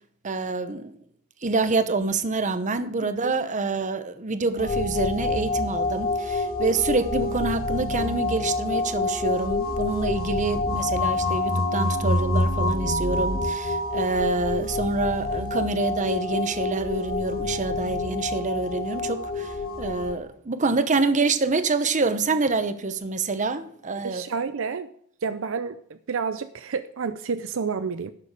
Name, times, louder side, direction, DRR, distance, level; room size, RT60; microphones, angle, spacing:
voice 1, 0.2-0.9 1.4-24.2, right 3 dB, 35° right, 0.9 m, -26 dB
sound 1, 4.6-20.1, left 2 dB, 45° left, 1.5 m, -27 dB
voice 2, 24.0-24.9 25.2-28.1, right 5 dB, 65° right, 0.5 m, -30 dB
11.5 x 6.9 x 4.8 m
head